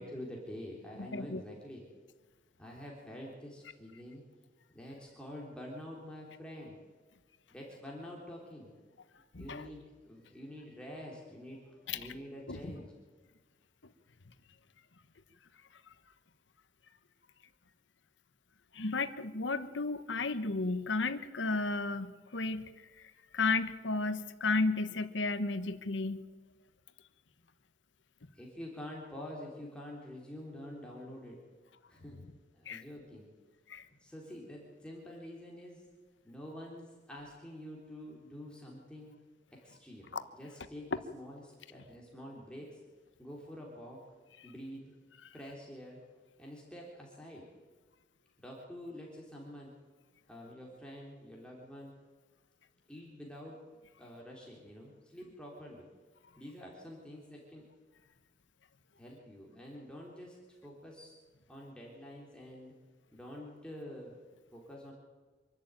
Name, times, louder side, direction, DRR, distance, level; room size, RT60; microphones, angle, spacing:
voice 1, 0.0-1.9 2.6-4.2 4.7-6.8 7.5-8.7 9.4-12.9 28.3-31.4 31.9-32.2 32.5-33.3 34.0-35.8 36.2-39.2 39.6-42.8 43.2-44.0 44.4-44.9 45.3-46.0 46.4-47.4 48.4-49.7 50.3-51.9 52.9-53.6 54.0-55.9 56.4-57.6 59.0-60.4 60.6-61.1 61.5-62.7 63.1-64.2 64.5-64.9, left 1 dB, 5° left, -3 dB, 3.4 m, -47 dB
voice 2, 1.0-1.4 9.3-9.7 11.9-12.0 12.5-12.6 18.7-22.7 23.3-26.2 32.7-32.8 33.7-33.9 40.1-40.2, left 3 dB, 80° left, 11 dB, 1.2 m, -33 dB
26.0 x 12.0 x 9.0 m, 1.4 s
head